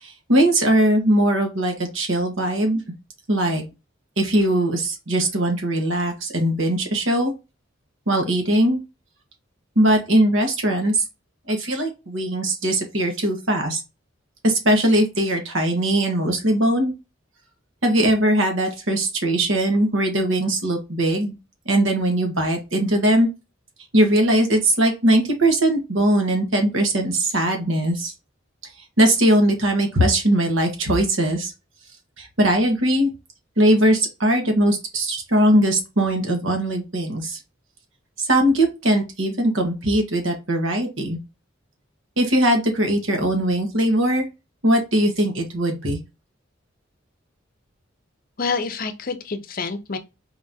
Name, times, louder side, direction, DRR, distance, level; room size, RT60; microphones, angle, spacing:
voice 1, 0.0-2.8 3.3-3.6 4.2-7.3 8.1-8.8 9.7-11.0 11.5-13.8 14.4-16.9 17.8-21.3 21.6-23.3 23.9-28.1 29.0-31.5 32.2-33.1 33.6-37.4 38.2-41.2 42.2-44.2 44.6-46.0, right 1 dB, 70° right, 1.3 m, -20 dB
voice 2, 48.4-50.0, left 4 dB, 45° left, 0.7 m, -27 dB
4.4 x 3.5 x 2.7 m
head